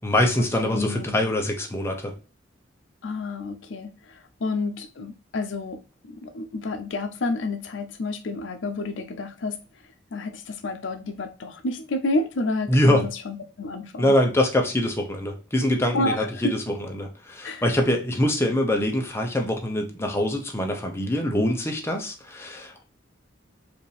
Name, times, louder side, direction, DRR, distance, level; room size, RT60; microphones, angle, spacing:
voice 1, 0.0-2.1 12.7-13.1 14.0-22.8, left 1 dB, 15° left, 0.7 m, -24 dB
voice 2, 0.6-1.3 3.0-5.8 6.1-9.6 10.1-14.1 15.9-16.6 17.4-17.6, left 2 dB, 80° left, 0.5 m, -30 dB
4.9 x 2.6 x 3.3 m
head